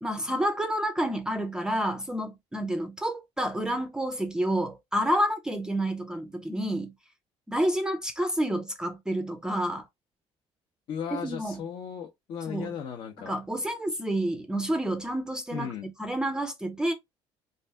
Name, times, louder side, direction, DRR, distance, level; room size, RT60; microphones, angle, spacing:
voice 1, 0.0-6.9 7.5-9.9 11.1-11.6 12.5-12.7 13.3-15.7 16.0-16.9, right 1 dB, 5° right, 0.4 m, -29 dB
voice 2, 10.9-13.3 15.5-15.9, left 7 dB, 60° left, 0.7 m, -36 dB
3.2 x 2.7 x 3.3 m
cardioid pair, 150°, 10 cm